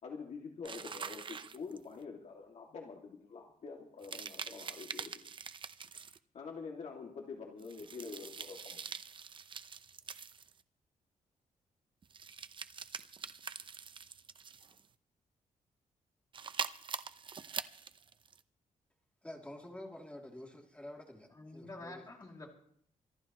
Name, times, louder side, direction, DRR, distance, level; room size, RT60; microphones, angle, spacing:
voice 1, 0.0-5.2 6.3-8.8, left 5 dB, 60° left, 0 dB, 2.2 m, -46 dB
sound 1, 0.7-2.0 4.0-6.2 7.6-10.6 12.0-14.9 16.3-18.4, right 6 dB, 40° right, 0.6 m, -44 dB
voice 2, 19.2-22.1, left 1 dB, 10° left, 0 dB, 2.7 m, -49 dB
voice 3, 21.3-22.5, left 2 dB, 25° left, 0 dB, 2.7 m, -48 dB
26.0 x 12.0 x 3.0 m, 0.64 s
cardioid pair, 125°, 13 cm